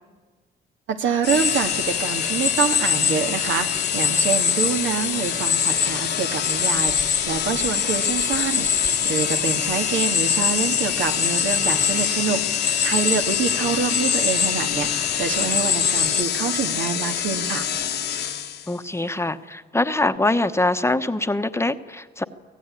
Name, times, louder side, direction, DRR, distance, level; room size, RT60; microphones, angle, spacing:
voice 1, 0.9-17.7, right 7 dB, 75° right, 6 dB, 1.9 m, -26 dB
sound 1, 1.2-18.8, left 9 dB, 60° left, 1.1 m, -27 dB
sound 2, 1.3-16.2, left 7 dB, 40° left, 1.0 m, -25 dB
voice 2, 18.7-22.2, left 2 dB, 15° left, 10 dB, 1.0 m, -23 dB
24.5 x 17.0 x 9.8 m, 1.4 s
cardioid pair, 90°, 20 cm